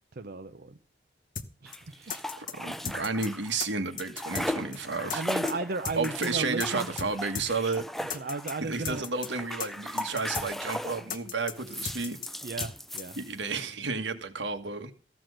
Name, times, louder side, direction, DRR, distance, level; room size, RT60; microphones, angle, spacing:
voice 1, 0.2-0.7 1.6-1.8 5.1-6.9 8.1-9.1 12.4-13.2, right 3 dB, 55° right, 0.6 m, -35 dB
sound 1, 1.4-1.5 1.7-1.8 2.1-2.5 2.8-3.3 3.6-3.7 4.0-4.5 4.7-4.8 5.1-5.5 5.8-6.3 6.6-6.7 7.0-7.1 7.3-7.5 7.7-7.8 8.1-8.5 8.8-9.3 9.6-9.7 10.0-10.5 10.7-10.8 11.1-11.5 11.8-12.3 12.6-12.7 13.0-13.1, left 7 dB, 45° left, 1.0 m, -36 dB
sound 2, 1.7-3.6 3.9-11.1 11.6-13.6, left 1 dB, ahead, 0.5 m, -37 dB
voice 2, 2.0-5.2 5.9-8.1 8.6-12.2 13.1-14.9, right 4 dB, 80° right, 1.6 m, -32 dB
14.5 x 6.1 x 6.4 m
head